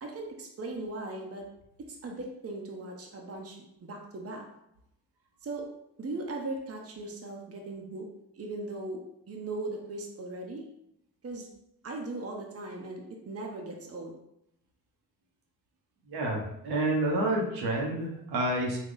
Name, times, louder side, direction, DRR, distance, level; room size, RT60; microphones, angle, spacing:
voice 1, 0.0-1.5 1.9-4.4 5.4-5.7 6.0-8.1 8.4-9.0 9.3-10.6 11.2-11.5 11.8-14.2, right 2 dB, 35° right, 1 dB, 0.9 m, -38 dB
voice 2, 16.1-18.8, right 1 dB, 75° right, -1 dB, 1.0 m, -29 dB
4.0 x 2.3 x 3.8 m, 0.80 s
supercardioid pair, 60°, 39 cm